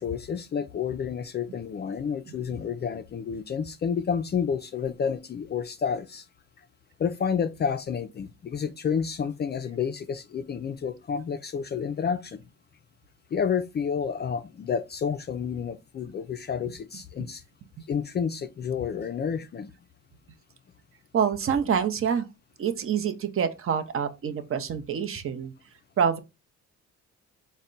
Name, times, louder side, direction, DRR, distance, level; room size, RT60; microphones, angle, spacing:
voice 1, 0.0-6.3 7.0-12.4 13.3-17.4 17.9-19.7, left 7 dB, 35° left, 0.4 m, -30 dB
voice 2, 21.1-22.3 22.6-25.5 26.0-26.2, right 7 dB, 45° right, 0.7 m, -26 dB
4.2 x 2.1 x 3.7 m
cardioid pair, 90°, 30 cm